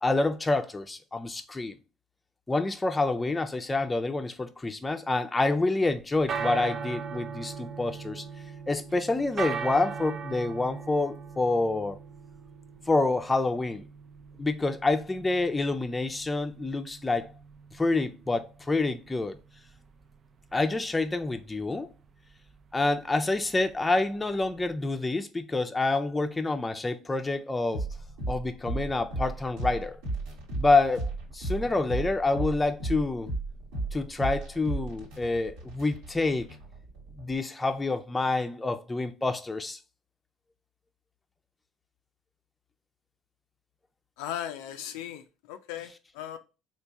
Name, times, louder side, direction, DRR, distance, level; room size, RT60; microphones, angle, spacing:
voice 1, 0.0-1.8 2.5-8.2 8.7-12.0 12.9-13.9 14.4-17.3 17.7-19.4 20.5-21.9 22.7-27.9 28.3-30.0 30.5-33.3 33.9-36.5 37.2-39.8, left 3 dB, 15° left, 0.6 m, -27 dB
Albert Clock Bell, 5.9-25.0, right 6 dB, 45° right, 0.5 m, -40 dB
sound 1, 27.7-37.3, right 2 dB, 85° right, 1.5 m, -35 dB
voice 2, 44.2-46.4, left 10 dB, 85° left, 0.4 m, -37 dB
3.5 x 2.5 x 4.0 m
supercardioid pair, 80°, 0 cm